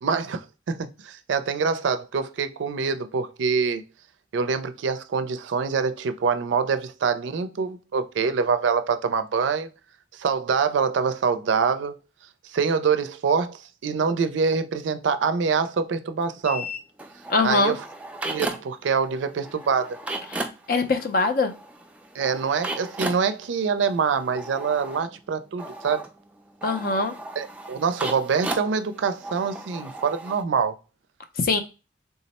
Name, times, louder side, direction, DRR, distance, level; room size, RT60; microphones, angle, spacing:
voice 1, 0.0-3.8 4.3-9.7 10.1-12.0 12.5-16.7 17.4-17.8 18.3-20.0 22.1-26.0 27.4-30.8, right 5 dB, 85° right, 0.4 m, -25 dB
sound 1, 16.4-18.9 19.1-30.4, right 1 dB, 5° right, 0.3 m, -36 dB
voice 2, 17.3-17.7 20.7-21.5 26.6-27.1 31.4-31.6, left 3 dB, 50° left, 0.5 m, -22 dB
3.6 x 2.0 x 4.0 m
head